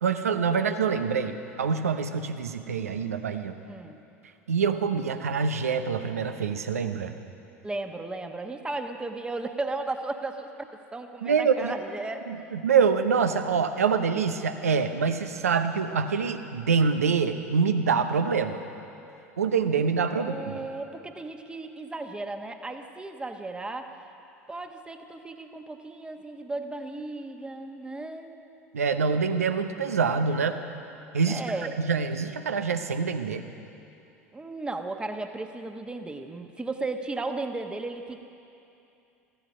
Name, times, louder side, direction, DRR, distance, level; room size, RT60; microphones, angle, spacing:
voice 1, 0.0-3.6 4.5-7.1 11.2-11.7 12.3-18.6 19.4-20.5 28.7-30.6 31.1-31.4 31.8-33.4, right 5 dB, 80° right, 8 dB, 0.8 m, -25 dB
voice 2, 3.7-4.0 7.6-12.2 20.2-24.0 24.5-28.4 31.3-31.8 34.3-38.2, right 2 dB, 10° right, 6 dB, 1.2 m, -35 dB
14.5 x 14.0 x 6.1 m, 2.7 s
figure-of-eight pair, 75°, 8 cm